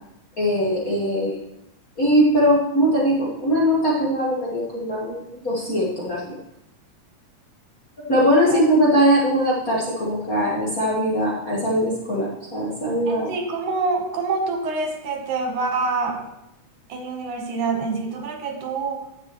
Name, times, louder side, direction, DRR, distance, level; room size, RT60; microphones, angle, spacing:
voice 1, 0.4-1.4 2.0-6.3 8.0-13.3, equal, 45° left, -6 dB, 1.2 m, -21 dB
voice 2, 13.1-16.2 16.9-19.0, right 3 dB, 85° right, 3 dB, 2.7 m, -26 dB
10.5 x 8.0 x 3.0 m, 0.83 s
omnidirectional pair, 3.4 m